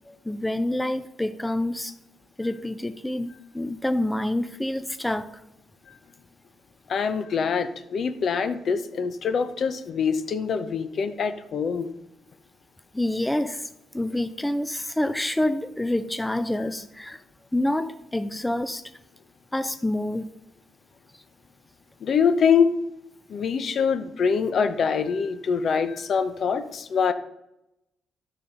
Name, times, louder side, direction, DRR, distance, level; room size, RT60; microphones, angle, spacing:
voice 1, 0.1-1.9 2.4-5.3 12.9-17.2 17.5-18.8 19.5-20.3, left 1 dB, 10° left, 11 dB, 0.5 m, -27 dB
voice 2, 6.9-11.9 22.0-22.7 23.3-27.1, left 6 dB, 55° left, 11 dB, 0.7 m, -24 dB
12.0 x 5.2 x 5.5 m, 0.87 s
cardioid pair, 90°, 0 cm